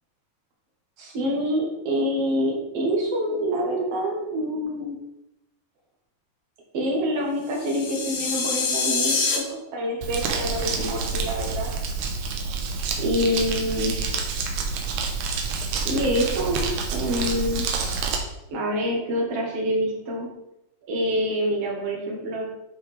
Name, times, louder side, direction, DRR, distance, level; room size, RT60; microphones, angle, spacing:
voice 1, 1.0-5.0 6.7-11.7 13.0-14.0 15.8-16.6 16.9-17.7 18.5-20.3 20.9-22.4, equal, 65° right, -1 dB, 1.5 m, -26 dB
sound 1, 7.5-9.4, left 4 dB, 80° left, 3.5 m, -25 dB
Crumpling crinkling, 10.0-18.2, right 4 dB, 90° right, 1.7 m, -28 dB
11.0 x 4.7 x 3.4 m, 0.86 s
omnidirectional pair, 5.0 m